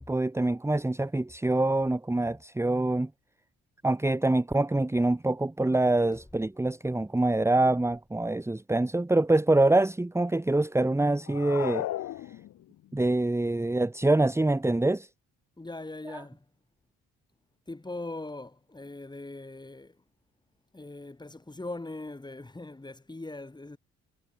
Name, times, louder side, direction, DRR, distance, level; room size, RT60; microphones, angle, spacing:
voice 1, 0.0-3.1 3.8-11.9 12.9-15.1 16.1-16.2, right 2 dB, 10° right, 1.4 m, -25 dB
sound 1, 11.2-12.9, left 13 dB, 65° left, 0.7 m, -35 dB
voice 2, 15.6-16.4 17.7-20.0 20.7-23.8, left 2 dB, 15° left, 3.8 m, -40 dB
cardioid pair, 90°, 30 cm